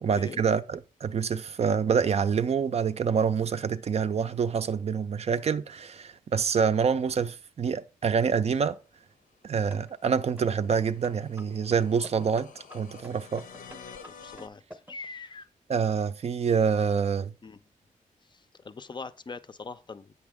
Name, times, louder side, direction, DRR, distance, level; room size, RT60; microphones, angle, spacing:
voice 1, 0.0-8.8 9.4-13.4 15.7-17.3, right 6 dB, 50° right, 0.4 m, -26 dB
sound 1, 9.7-15.0, equal, 10° right, 0.8 m, -47 dB
sound 2, 9.8-14.5, left 6 dB, 80° left, 0.7 m, -50 dB
voice 2, 14.0-15.5 16.8-16.9 17.4-17.6 18.3-20.1, left 4 dB, 35° left, 0.5 m, -42 dB
7.9 x 5.8 x 3.5 m
cardioid pair, 80°, 14 cm